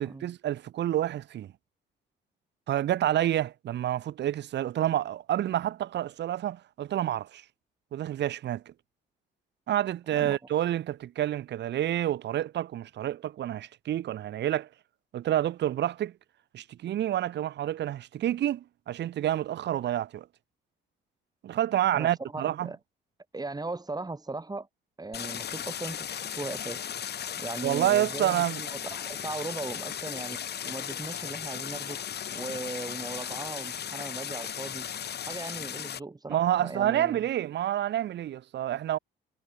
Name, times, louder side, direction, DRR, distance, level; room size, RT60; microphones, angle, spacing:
voice 1, 0.0-1.5 2.7-7.4 7.9-8.6 9.7-14.7 15.1-16.1 16.5-20.3 21.4-22.7 27.6-28.6 36.3-39.0, right 12 dB, 60° right, 0.7 m, -28 dB
voice 2, 21.9-22.8 23.3-24.7 25.0-26.8 27.4-32.0 32.3-34.9 35.2-37.2, right 3 dB, 20° right, 4.4 m, -38 dB
Stream, 25.1-36.0, left 9 dB, 55° left, 1.8 m, -36 dB
cardioid pair, 90°, 20 cm